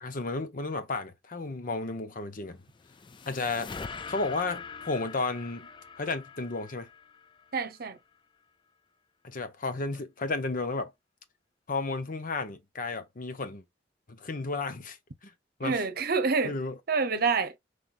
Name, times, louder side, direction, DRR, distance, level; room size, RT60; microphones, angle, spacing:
voice 1, 0.0-2.6 3.3-3.7 4.1-5.7 6.0-6.9 9.2-10.9 11.7-13.6 14.1-15.0 15.6-15.8 16.4-16.8, left 3 dB, 50° left, 0.8 m, -33 dB
sound 1, 2.4-7.8, left 5 dB, 25° left, 0.4 m, -44 dB
voice 2, 7.5-8.0 15.6-16.6 16.9-17.5, right 4 dB, 55° right, 0.9 m, -27 dB
5.7 x 3.3 x 2.5 m
head